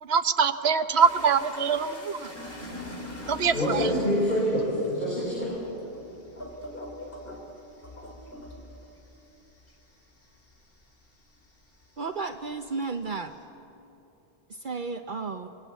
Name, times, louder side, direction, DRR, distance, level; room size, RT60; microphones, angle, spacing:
voice 1, 0.0-2.3 3.3-3.9, right 6 dB, 85° right, 10 dB, 1.2 m, -24 dB
sound 1, 1.0-11.9 12.3-13.4, left 1 dB, 65° left, 3.6 m, -43 dB
voice 2, 3.5-5.5, left 1 dB, 45° left, -6 dB, 6.2 m, -26 dB
voice 3, 12.0-13.3 14.5-15.5, right 4 dB, 55° right, 7 dB, 0.9 m, -33 dB
27.0 x 22.0 x 8.2 m, 2.9 s
omnidirectional pair, 1.0 m